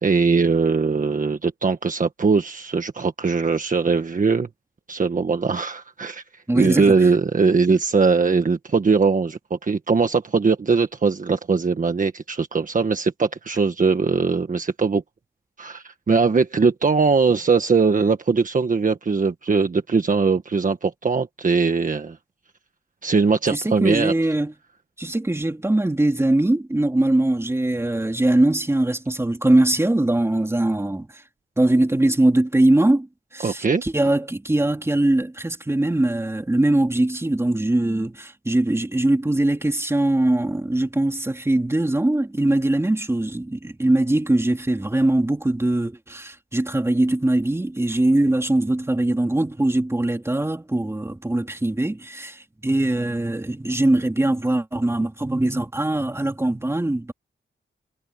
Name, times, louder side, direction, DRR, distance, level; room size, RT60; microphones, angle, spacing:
voice 1, 0.0-4.5 4.9-6.2 6.5-15.0 15.6-22.2 23.0-24.1 33.4-33.8, right 4 dB, 45° right, 1.5 m, -20 dB
voice 2, 6.5-6.9 23.5-24.5 25.0-31.1 31.6-33.1 33.3-57.1, right 1 dB, 15° right, 3.1 m, -21 dB
wide cardioid pair, 150°, 20 cm